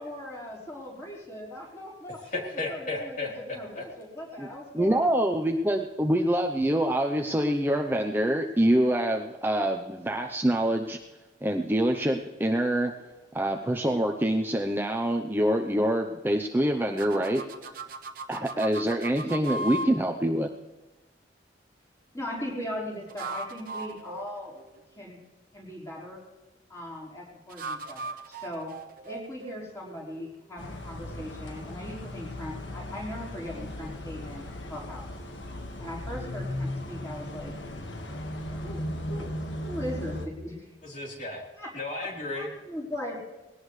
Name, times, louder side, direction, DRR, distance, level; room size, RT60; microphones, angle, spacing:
voice 1, 0.0-5.4 22.1-24.6 24.9-25.2 25.5-26.2 26.7-28.7 29.0-35.1 35.8-37.5 38.4-39.3 39.6-40.7 41.6-41.7 42.3-43.2, left 1 dB, 15° left, -4 dB, 4.5 m, -39 dB
voice 2, 2.3-3.3 3.8-3.9 40.8-41.4 41.7-42.5, left 2 dB, 45° left, -2 dB, 3.7 m, -33 dB
voice 3, 4.7-11.0 11.4-12.9 13.3-17.4 18.3-20.5, right 1 dB, 10° right, 3 dB, 0.7 m, -25 dB
sound 1, 17.0-19.9 22.9-25.1 27.5-30.4, right 2 dB, 50° right, 1.1 m, -38 dB
sound 2, 30.6-40.3, left 1 dB, 90° left, 1.7 m, -37 dB
20.0 x 17.5 x 3.2 m, 1.1 s
head